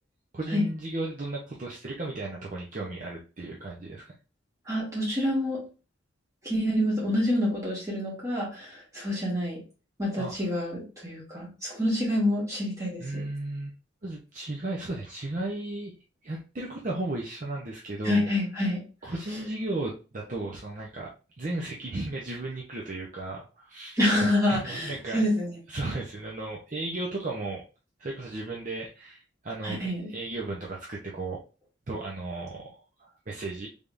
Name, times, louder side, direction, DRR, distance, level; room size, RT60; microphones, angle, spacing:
voice 1, 0.3-4.1 10.2-10.3 13.0-13.7 14.0-15.9 16.2-18.3 19.0-21.1 21.4-24.0 24.5-25.2 25.7-27.6 28.0-31.4 31.9-33.7, right 2 dB, 40° right, -3 dB, 0.6 m, -35 dB
voice 2, 4.6-5.6 6.4-9.6 10.0-13.2 18.0-18.8 24.0-25.6 29.6-30.1, left 1 dB, 15° right, -5 dB, 1.7 m, -27 dB
3.5 x 3.4 x 2.5 m, 0.33 s
head